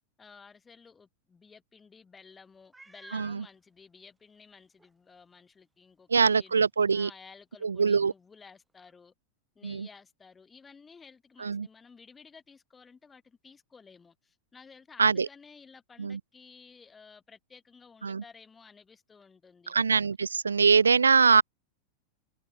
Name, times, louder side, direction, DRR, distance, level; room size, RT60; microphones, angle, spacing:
voice 1, 0.2-6.6 6.9-9.1 9.5-19.7, left 5 dB, 15° left, 4.7 m, -54 dB
Meow, 2.7-3.4 4.2-4.3 4.8-4.9 8.9-9.0, right 2 dB, 10° right, 2.0 m, -50 dB
voice 2, 3.1-3.4 6.1-7.1 7.6-8.1 9.6-9.9 11.4-11.7 15.0-15.3 16.0-16.2 18.0-18.2 19.7-21.4, right 5 dB, 75° right, 0.4 m, -23 dB
figure-of-eight pair, 90°, 0 cm